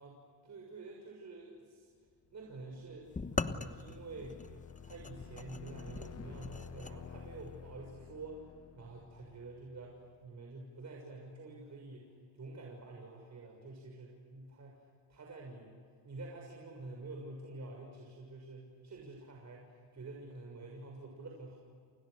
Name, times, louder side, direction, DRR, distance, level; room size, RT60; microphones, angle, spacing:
voice 1, 0.0-1.9 2.3-4.4 4.8-8.5 8.8-14.8 15.1-15.7 16.0-21.6, right 2 dB, 35° right, 0 dB, 6.7 m, -48 dB
sound 1, 2.4-10.2, left 7 dB, 35° left, 1.1 m, -52 dB
sound 2, 3.1-7.0, left 4 dB, 15° left, 1.1 m, -41 dB
29.0 x 29.0 x 6.7 m, 2.1 s
cardioid pair, 95°, 47 cm